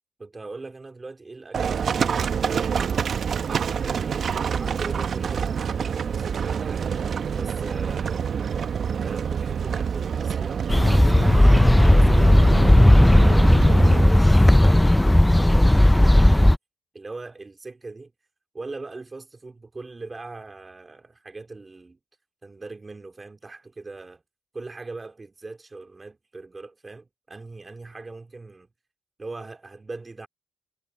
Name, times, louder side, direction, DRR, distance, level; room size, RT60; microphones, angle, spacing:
voice 1, 0.2-3.3 3.8-6.9 7.4-8.1 8.9-12.9 13.2-16.5 16.9-18.1 18.5-22.0 22.4-24.2 24.5-28.7 29.2-30.3, right 3 dB, 25° right, 3.1 m, -40 dB
Livestock farm animals working animals, 1.5-14.0, right 7 dB, 50° right, 1.0 m, -27 dB
sound 1, 10.7-16.6, left 1 dB, 5° left, 0.5 m, -15 dB
cardioid pair, 90°, 0 cm